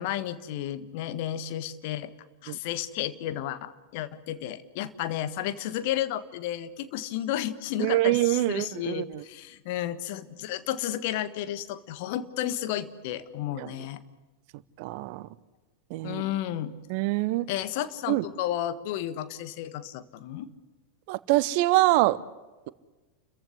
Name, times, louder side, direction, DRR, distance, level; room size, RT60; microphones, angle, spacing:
voice 1, 0.0-2.1 2.4-14.0 16.0-16.7 17.5-20.5, left 12 dB, 50° left, 13 dB, 1.5 m, -32 dB
voice 2, 7.8-9.2 13.6-13.7 14.8-15.3 15.9-16.2 16.9-17.5 18.1-18.2 21.1-22.2, right 17 dB, 45° right, 19 dB, 0.8 m, -25 dB
29.5 x 15.0 x 9.7 m, 1.2 s
figure-of-eight pair, 90°, 0 cm